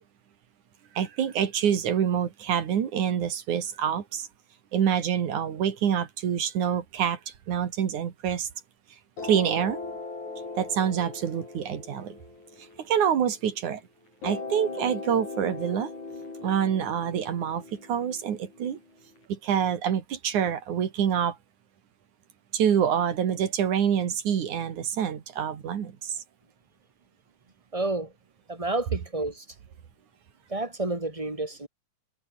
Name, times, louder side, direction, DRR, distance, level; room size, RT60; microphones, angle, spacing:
voice 1, 1.0-4.3 4.7-8.5 9.2-9.8 10.6-12.2 12.8-13.8 14.2-15.9 16.4-18.8 19.3-21.4 22.5-26.2, right 8 dB, 85° right, 3.7 m, -26 dB
sound 1, 9.2-13.6 14.2-19.2, left 3 dB, 80° left, 9.4 m, -39 dB
voice 2, 27.7-28.1 28.5-29.5 30.5-31.7, right 2 dB, 10° right, 4.7 m, -30 dB
omnidirectional pair, 3.3 m